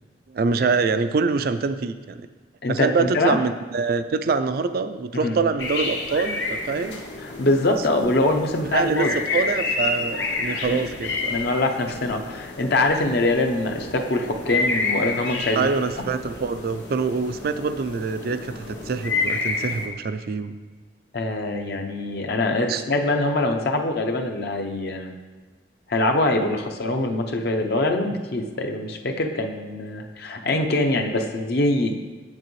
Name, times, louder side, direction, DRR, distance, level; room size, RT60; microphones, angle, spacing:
voice 1, 0.3-2.2 2.7-7.0 8.7-11.4 15.6-20.5 22.7-22.8, right 4 dB, 55° right, 11 dB, 0.4 m, -25 dB
voice 2, 2.6-3.4 5.1-5.5 7.2-9.1 10.5-10.8 11.3-15.7 21.1-25.1 25.9-31.9, left 2 dB, 60° left, 4 dB, 0.6 m, -23 dB
sound 1, 5.6-19.9, left 3 dB, 80° left, 1.0 m, -29 dB
7.7 x 7.4 x 3.1 m, 1.3 s
head